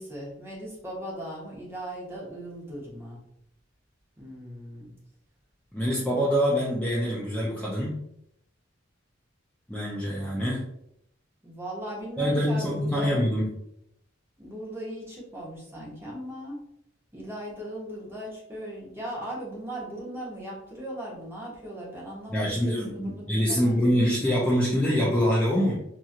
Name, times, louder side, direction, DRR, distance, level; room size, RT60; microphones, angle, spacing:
voice 1, 0.0-3.2 4.2-4.9 11.4-13.1 14.4-16.6 17.1-24.1, equal, 15° right, -5 dB, 1.0 m, -38 dB
voice 2, 5.7-7.9 9.7-10.6 12.2-13.4 22.3-25.8, equal, 10° left, -6 dB, 0.5 m, -25 dB
2.8 x 2.8 x 2.5 m, 0.75 s
head